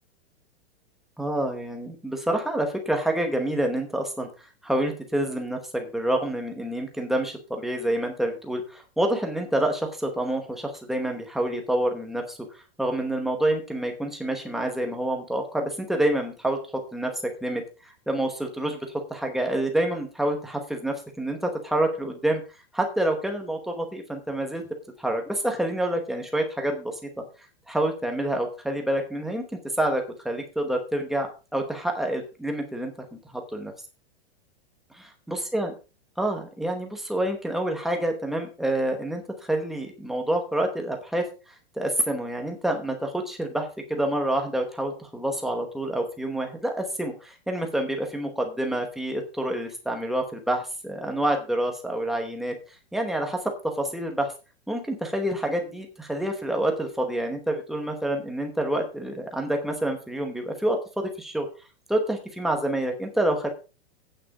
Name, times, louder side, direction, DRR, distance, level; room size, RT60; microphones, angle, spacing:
voice 1, 1.2-4.3 4.6-16.6 16.9-18.8 19.1-22.4 22.7-24.7 25.0-27.1 27.7-32.9 33.3-33.7 35.3-35.7 36.2-41.2 41.8-52.5 52.9-54.3 54.7-61.5 61.9-63.5, right 1 dB, ahead, 3 dB, 0.9 m, -27 dB
8.9 x 8.2 x 4.8 m, 0.31 s
supercardioid pair, 175°, 32 cm